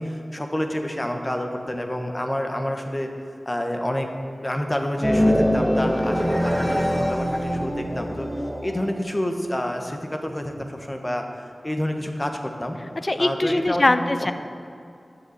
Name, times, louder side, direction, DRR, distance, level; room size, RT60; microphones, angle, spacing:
voice 1, 0.0-3.1 3.5-4.1 4.4-8.3 8.6-11.2 11.6-12.8 13.2-14.1, left 1 dB, 25° left, 4 dB, 1.1 m, -28 dB
sound 1, 5.0-8.9, equal, ahead, 0.8 m, -23 dB
voice 2, 13.0-14.3, left 2 dB, 40° left, 10 dB, 0.5 m, -21 dB
6.9 x 6.6 x 7.8 m, 2.5 s
wide cardioid pair, 55°, 0 cm